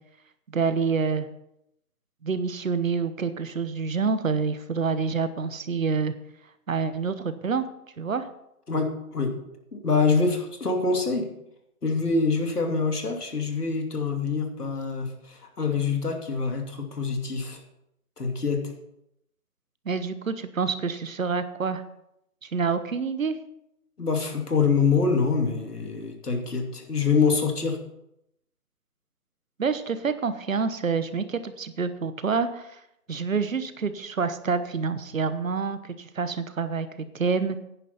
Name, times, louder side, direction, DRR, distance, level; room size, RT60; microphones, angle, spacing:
voice 1, 0.5-1.3 2.2-6.1 6.7-7.6 8.0-8.3 19.8-21.8 22.4-23.4 29.6-32.8 33.1-36.9 37.1-37.6, right 5 dB, 60° right, 12 dB, 1.1 m, -27 dB
voice 2, 8.7-9.3 9.7-11.3 11.8-17.6 18.2-18.7 24.0-27.8, left 4 dB, 85° left, 3 dB, 2.8 m, -25 dB
10.5 x 10.5 x 4.2 m, 0.81 s
figure-of-eight pair, 165°, 45 cm